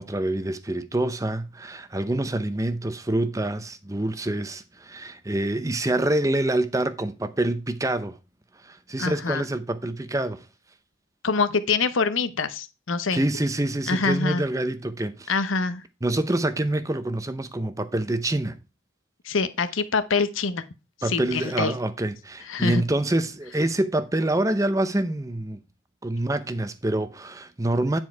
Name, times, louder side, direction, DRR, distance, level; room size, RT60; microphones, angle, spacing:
voice 1, 0.0-8.2 8.6-10.4 13.1-15.3 16.0-18.6 21.0-25.6 26.0-28.0, right 1 dB, 15° right, 0.6 m, -26 dB
voice 2, 9.0-9.4 11.2-13.2 13.9-14.4 15.3-15.8 19.2-20.6 21.0-21.7 22.5-22.8, left 4 dB, 90° left, 0.9 m, -25 dB
9.7 x 4.5 x 4.6 m
head